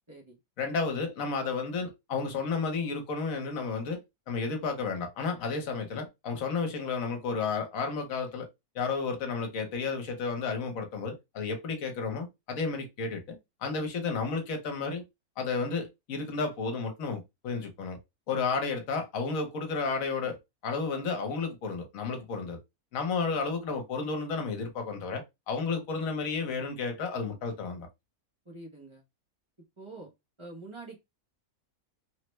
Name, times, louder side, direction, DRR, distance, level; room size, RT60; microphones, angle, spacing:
voice 1, 0.1-0.4 28.4-29.0 29.8-30.1 30.4-31.0, right 2 dB, 30° right, 0.5 m, -45 dB
voice 2, 0.6-4.0 4.3-8.5 8.7-15.0 15.4-18.0 18.3-20.4 20.6-22.6 22.9-27.9, left 4 dB, 65° left, 1.2 m, -32 dB
3.2 x 2.1 x 3.0 m
omnidirectional pair, 1.6 m